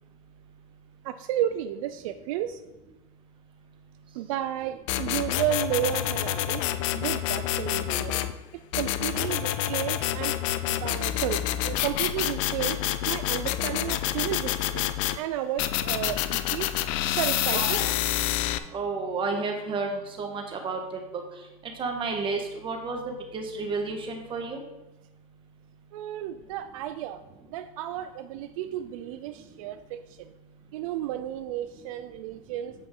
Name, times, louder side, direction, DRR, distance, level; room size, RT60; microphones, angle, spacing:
voice 1, 1.0-2.6 4.2-6.7 6.9-8.2 8.7-10.4 10.7-12.8 13.1-14.8 15.2-16.8 17.1-17.9 25.9-27.2 27.5-30.3 30.7-32.7, right 11 dB, 75° right, 10 dB, 0.4 m, -32 dB
sound 1, 4.9-8.3 8.7-15.2 15.6-18.6, left 13 dB, 65° left, 0.5 m, -28 dB
voice 2, 17.5-17.9 18.7-20.8 21.8-23.0 23.3-24.6, right 4 dB, 30° right, 3 dB, 1.4 m, -31 dB
8.5 x 5.0 x 3.8 m, 0.98 s
supercardioid pair, 125°, 17 cm